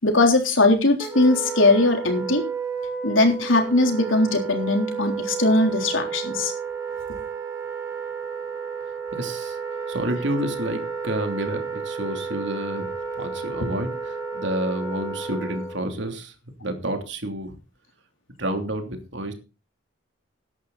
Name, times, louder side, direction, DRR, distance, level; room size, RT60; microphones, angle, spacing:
voice 1, 0.0-2.4 3.0-6.5, left 2 dB, 80° left, 4 dB, 3.6 m, -20 dB
Wind instrument woodwind instrument, 1.0-15.9, right 5 dB, 15° right, 4.0 m, -32 dB
voice 2, 9.1-9.6 9.9-16.3 16.6-17.6 18.4-19.3, right 1 dB, 65° right, 6 dB, 3.0 m, -29 dB
14.5 x 11.0 x 4.2 m, 0.31 s
head